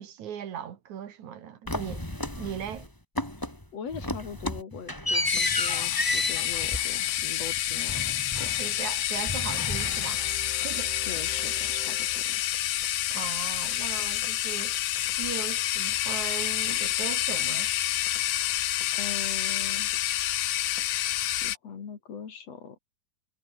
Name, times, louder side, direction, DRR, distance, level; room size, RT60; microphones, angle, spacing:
voice 1, 0.0-2.0 2.4-2.9 8.6-10.3 10.6-10.9 13.1-14.8 15.2-17.7, right 9 dB, 70° right, 3.1 m, -38 dB
sound 1, 1.7-2.9 3.2-3.6 3.9-8.9 9.2-10.5, left 1 dB, 5° left, 3.2 m, -32 dB
voice 2, 3.7-7.9 8.4-8.6 11.0-12.4 18.9-19.9 21.4-22.8, left 6 dB, 55° left, 3.7 m, -41 dB
sound 2, 5.3-21.6, left 13 dB, 85° left, 2.7 m, -28 dB
sound 3, 9.7-12.9, right 2 dB, 15° right, 2.1 m, -45 dB
omnidirectional pair, 3.6 m